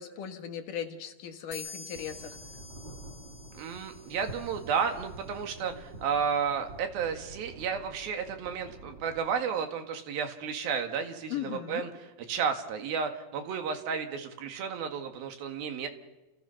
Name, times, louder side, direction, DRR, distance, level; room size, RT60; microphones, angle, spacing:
voice 1, 0.0-2.4 11.3-11.9, left 9 dB, 70° left, 5 dB, 3.1 m, -38 dB
sound 1, 1.5-5.1, left 4 dB, 30° left, 7.0 m, -48 dB
sound 2, 1.9-9.2, right 2 dB, 30° right, 4.4 m, -47 dB
voice 2, 3.6-11.9 12.3-15.9, right 6 dB, 90° right, 5 dB, 3.7 m, -32 dB
29.5 x 29.0 x 5.8 m, 1.1 s
omnidirectional pair, 4.1 m